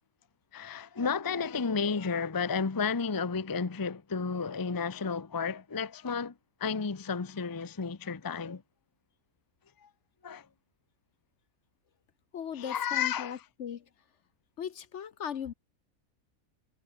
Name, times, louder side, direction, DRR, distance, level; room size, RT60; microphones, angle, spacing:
voice 1, 0.5-8.6 9.8-9.9 10.2-10.5 12.5-13.4, left 5 dB, 20° left, 0.6 m, -32 dB
voice 2, 12.3-13.8 14.6-15.5, left 8 dB, 60° left, 1.0 m, -38 dB
omnidirectional pair, 1.5 m